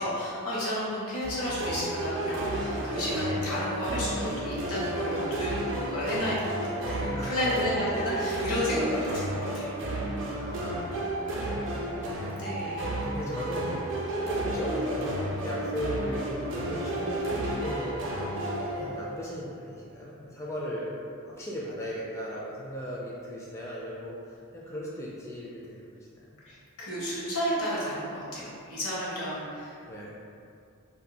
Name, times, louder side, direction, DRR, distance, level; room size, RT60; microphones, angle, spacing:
voice 1, 0.0-9.7 11.6-11.8 12.1-12.9 26.4-29.8, equal, 75° left, -7 dB, 1.1 m, -32 dB
sound 1, 1.2-19.4, right 1 dB, 60° right, 0.5 m, -32 dB
voice 2, 7.1-7.6 8.6-8.7 10.0-11.7 12.0-12.3 12.6-12.7 13.0-13.7 14.2-18.1 18.8-20.9 21.2-26.1 29.9-30.1, equal, 15° left, -6 dB, 0.3 m, -37 dB
2.6 x 2.3 x 4.0 m, 2.5 s
head